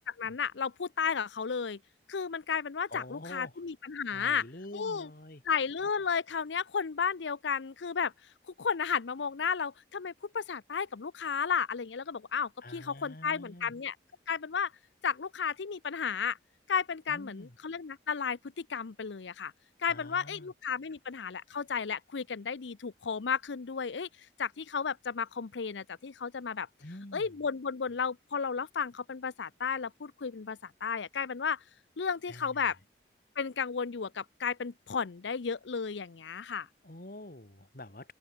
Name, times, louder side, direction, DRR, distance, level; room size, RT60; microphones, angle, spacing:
voice 1, 0.0-1.8 2.1-4.4 4.7-5.1 5.5-8.1 8.6-13.9 14.3-14.7 15.0-16.4 16.7-19.5 19.8-24.1 24.4-26.7 27.1-31.6 32.0-32.8 33.4-36.7, left 6 dB, 90° left, 0.6 m, -33 dB
voice 2, 2.9-3.6 4.1-5.4 12.6-13.8 17.1-17.6 19.9-20.5 26.8-27.3 32.3-32.7 36.8-38.1, left 1 dB, 50° left, 2.2 m, -46 dB
open air
head